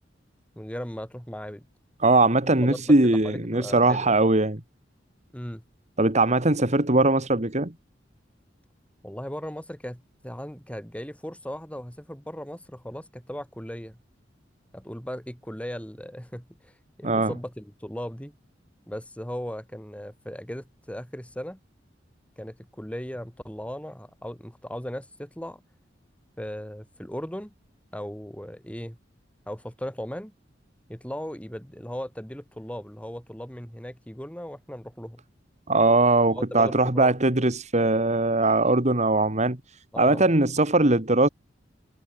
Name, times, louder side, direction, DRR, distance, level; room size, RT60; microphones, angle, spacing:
voice 1, 0.6-1.6 2.6-4.1 5.3-5.6 9.0-14.0 14.7-16.7 17.0-18.4 18.9-21.6 22.4-25.6 26.4-27.5 27.9-29.0 29.5-30.3 30.9-35.2 36.4-37.1 39.9-40.3, equal, 5° left, 3.7 m, -37 dB
voice 2, 2.0-4.6 6.0-7.7 17.0-17.3 35.7-39.6 40.0-41.3, right 2 dB, 40° right, 2.3 m, -21 dB
head